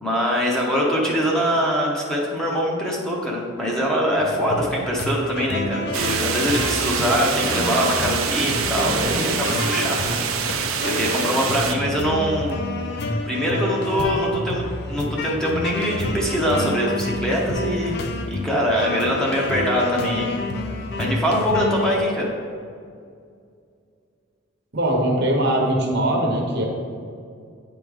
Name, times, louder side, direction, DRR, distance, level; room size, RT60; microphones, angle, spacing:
voice 1, 0.0-10.2 10.8-12.6 13.0-18.0 18.3-20.3 21.0-22.3, equal, 5° left, -4 dB, 0.8 m, -23 dB
sound 1, 4.2-21.9, left 2 dB, 50° left, 0.5 m, -29 dB
sound 2, 5.9-11.7, right 6 dB, 75° right, 0.5 m, -25 dB
voice 2, 24.7-26.7, right 1 dB, 55° right, 1 dB, 0.9 m, -21 dB
8.8 x 3.5 x 3.5 m, 2.3 s
head